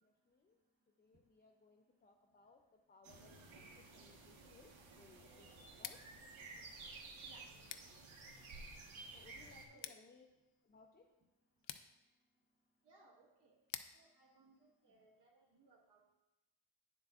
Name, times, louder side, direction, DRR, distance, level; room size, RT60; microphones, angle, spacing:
voice 1, 0.0-0.6 1.0-2.6 2.9-3.3 3.9-5.5 5.8-6.0 9.1-10.3 10.6-11.0, left 4 dB, 20° left, 1 dB, 0.4 m, -64 dB
sound 1, 3.0-9.7, right 3 dB, 80° right, 1.3 m, -54 dB
Scissors, 5.7-15.5, left 11 dB, 75° left, 0.6 m, -56 dB
voice 2, 9.7-10.0 12.8-13.5 13.9-16.1, right 3 dB, 60° right, -3 dB, 1.4 m, -67 dB
9.7 x 7.5 x 2.4 m, 0.99 s
wide cardioid pair, 175°, 47 cm